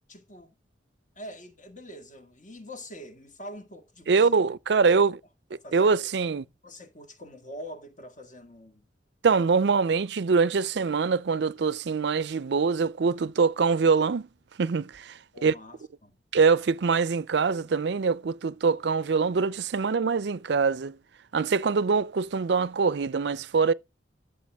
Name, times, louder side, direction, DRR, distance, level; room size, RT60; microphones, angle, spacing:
voice 1, 0.1-0.5 1.2-4.4 4.9-5.0 5.6-6.0 6.6-8.8 15.3-16.1, equal, 40° left, 1.9 m, -44 dB
voice 2, 4.1-5.2 5.7-6.4 9.2-14.3 14.6-15.5 16.3-21.0 21.3-23.7, right 5 dB, 65° right, 0.5 m, -24 dB
12.5 x 6.7 x 3.5 m
head